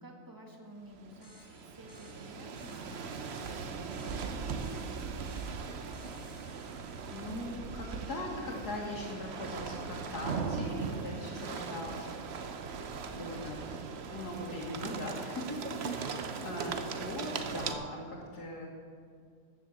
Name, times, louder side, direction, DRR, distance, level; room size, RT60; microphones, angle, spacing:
voice 1, 0.0-5.1 11.1-11.6 15.5-15.9, right 1 dB, 15° right, 0 dB, 1.8 m, -51 dB
sound 1, 0.9-17.8, right 5 dB, 50° right, 0.9 m, -39 dB
sound 2, 1.2-8.4, left 2 dB, 50° left, 2.3 m, -61 dB
voice 2, 7.1-12.1 13.1-13.8 14.1-18.7, left 1 dB, 80° left, -5 dB, 2.2 m, -40 dB
14.0 x 7.2 x 7.3 m, 2.2 s
omnidirectional pair, 1.7 m